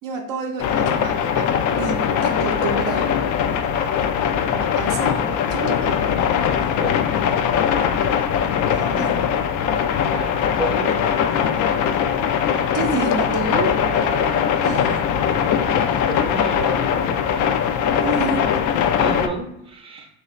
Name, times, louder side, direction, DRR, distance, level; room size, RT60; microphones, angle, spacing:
voice 1, 0.0-1.5 1.8-3.1 4.5-6.0 8.7-9.3 12.7-15.0 18.0-18.5, right 4 dB, 50° right, 2 dB, 0.7 m, -29 dB
sound 1, 0.6-19.3, left 8 dB, 50° left, 0.4 m, -21 dB
voice 2, 10.1-11.1 16.1-16.8 19.0-20.1, right 2 dB, 15° right, 1 dB, 0.7 m, -31 dB
3.1 x 2.7 x 3.0 m, 0.79 s
hypercardioid pair, 65°, 41 cm